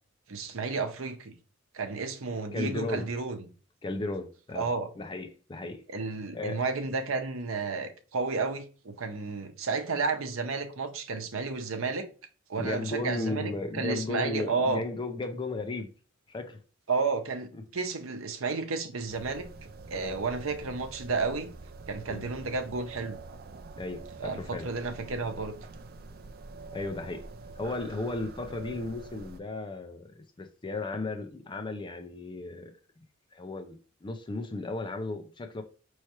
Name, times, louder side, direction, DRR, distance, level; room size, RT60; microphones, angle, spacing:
voice 1, 0.3-1.3 1.7-3.4 4.5-4.9 5.9-12.1 12.5-14.8 16.9-19.5 19.9-21.5 21.9-23.2 24.2-25.6, right 4 dB, 75° right, 0.7 m, -32 dB
voice 2, 2.5-3.1 3.8-4.7 5.0-5.8 6.3-6.6 12.6-15.9 16.3-16.6 20.0-20.2 22.1-22.2 23.8-24.7 26.7-27.2 27.6-32.7 33.3-35.6, left 2 dB, 25° left, 0.4 m, -35 dB
sound 1, 19.1-29.4, right 3 dB, 45° right, 0.4 m, -45 dB
4.6 x 3.1 x 2.9 m
head